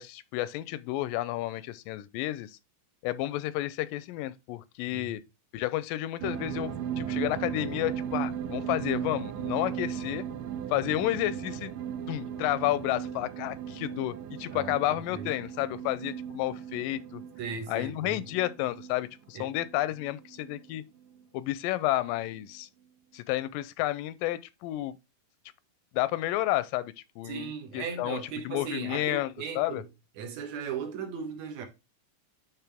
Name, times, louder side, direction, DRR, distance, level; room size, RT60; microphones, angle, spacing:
voice 1, 0.0-2.6 3.0-5.2 5.5-10.2 10.7-11.7 12.1-17.2 17.7-20.8 21.3-22.7 23.1-25.0 25.9-29.8, left 15 dB, 85° left, 2.2 m, -31 dB
sound 1, 6.2-20.8 21.2-21.3, right 9 dB, 85° right, 2.2 m, -37 dB
voice 2, 17.4-18.2 19.3-19.5 27.3-29.9 30.2-31.7, right 6 dB, 65° right, 2.3 m, -37 dB
10.5 x 3.6 x 3.4 m
omnidirectional pair, 3.8 m